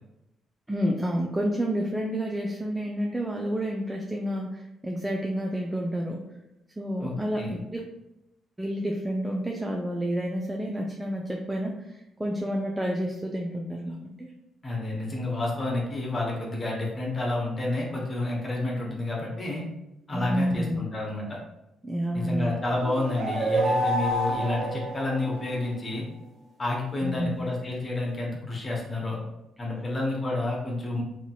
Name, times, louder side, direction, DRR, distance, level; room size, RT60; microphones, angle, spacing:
voice 1, 0.7-6.2 6.8-7.8 8.6-11.8 12.2-14.3 20.1-20.8 21.8-22.5 27.0-27.3, equal, 10° right, 0 dB, 0.3 m, -29 dB
voice 2, 7.0-7.6 14.6-19.6 20.1-21.4 22.1-26.0 26.6-29.2 29.6-31.0, left 2 dB, 30° left, -2 dB, 0.9 m, -30 dB
sound 1, 22.8-25.7, right 1 dB, 70° right, 0.7 m, -28 dB
2.9 x 2.8 x 2.3 m, 0.89 s
cardioid pair, 90°, 0 cm